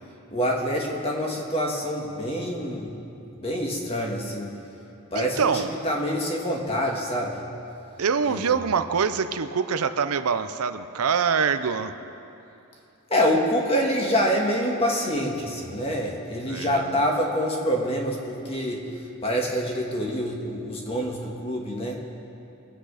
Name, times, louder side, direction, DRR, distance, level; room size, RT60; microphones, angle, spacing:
voice 1, 0.3-2.9 3.4-4.6 5.1-7.4 8.3-8.5 13.1-18.9 19.2-22.0, equal, 25° left, -1 dB, 1.8 m, -26 dB
voice 2, 5.1-5.7 8.0-11.9 16.5-17.1, right 6 dB, 80° right, 10 dB, 0.6 m, -25 dB
23.0 x 9.0 x 5.0 m, 2.8 s
head